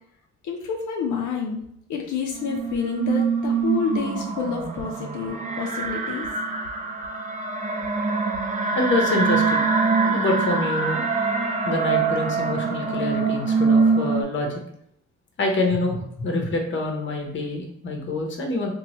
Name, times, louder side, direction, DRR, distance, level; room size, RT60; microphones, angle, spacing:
voice 1, 0.4-1.6 1.9-6.3, left 6 dB, 75° left, 1 dB, 0.5 m, -28 dB
sound 1, 2.3-14.2, right 4 dB, 25° right, 0.4 m, -24 dB
voice 2, 8.7-9.6 10.0-11.1 11.6-14.6 15.4-18.7, left 2 dB, 40° left, 2 dB, 0.7 m, -26 dB
3.0 x 2.2 x 2.9 m, 0.70 s
cardioid pair, 90°, 30 cm